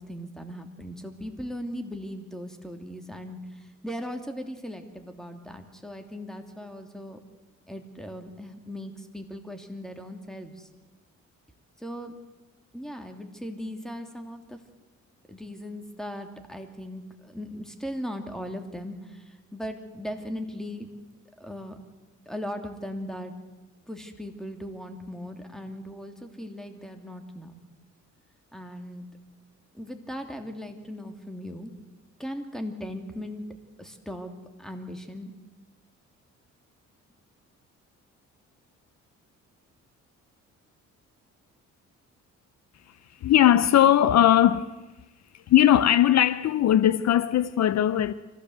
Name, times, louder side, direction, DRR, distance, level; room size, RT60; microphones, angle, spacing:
voice 1, 0.0-7.2 7.7-10.7 11.8-12.1 12.7-14.6 15.3-20.9 21.4-21.8 22.2-23.3 23.9-27.6 28.5-29.1 29.7-31.7 32.2-33.4 33.8-34.3 34.6-35.3, equal, ahead, 2.9 m, -38 dB
voice 2, 43.2-44.7 45.3-48.1, left 11 dB, 60° left, 0.7 m, -19 dB
25.0 x 16.0 x 8.1 m
cardioid pair, 90°, 30 cm